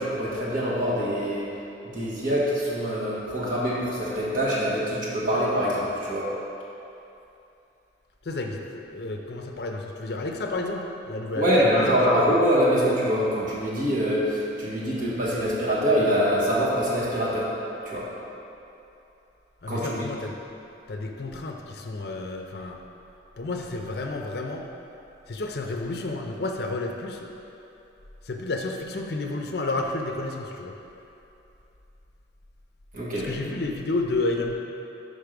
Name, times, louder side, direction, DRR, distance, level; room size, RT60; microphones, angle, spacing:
voice 1, 0.0-1.5 1.9-6.3 11.3-17.5 17.8-18.1 19.7-20.1 32.9-33.3, equal, 45° right, -7 dB, 1.3 m, -24 dB
voice 2, 8.2-12.3 19.6-20.4 20.9-22.8 23.4-24.7 25.3-27.3 28.2-30.7 33.1-34.5, left 2 dB, 60° left, 2 dB, 0.5 m, -31 dB
5.3 x 4.7 x 5.1 m, 2.8 s
head